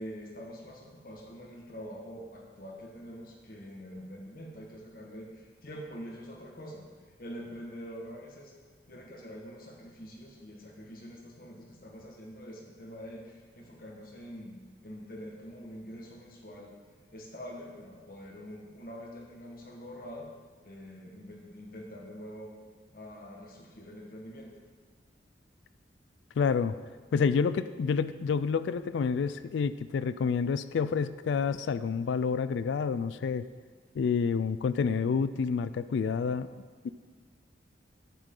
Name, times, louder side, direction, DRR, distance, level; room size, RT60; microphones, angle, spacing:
voice 1, 0.0-6.8 7.2-8.5 8.9-16.7 17.1-20.3 20.6-22.5 22.9-24.5, equal, 50° left, -1 dB, 1.5 m, -45 dB
voice 2, 26.4-26.8 27.1-33.5 34.0-36.9, left 5 dB, 80° left, 14 dB, 0.3 m, -29 dB
10.5 x 8.2 x 3.8 m, 1.5 s
head